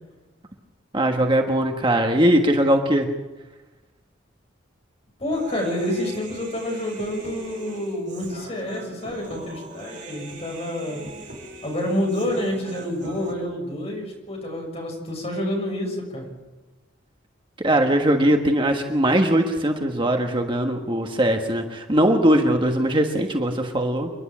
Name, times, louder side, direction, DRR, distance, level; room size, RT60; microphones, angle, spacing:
voice 1, 0.9-3.1 17.6-24.1, right 1 dB, 25° right, 3 dB, 1.5 m, -20 dB
voice 2, 5.2-11.0 11.6-16.3, left 1 dB, 35° left, 1 dB, 6.6 m, -28 dB
Human voice, 5.3-13.3, right 2 dB, 40° right, 6.6 m, -41 dB
29.0 x 11.0 x 8.8 m, 1.1 s
head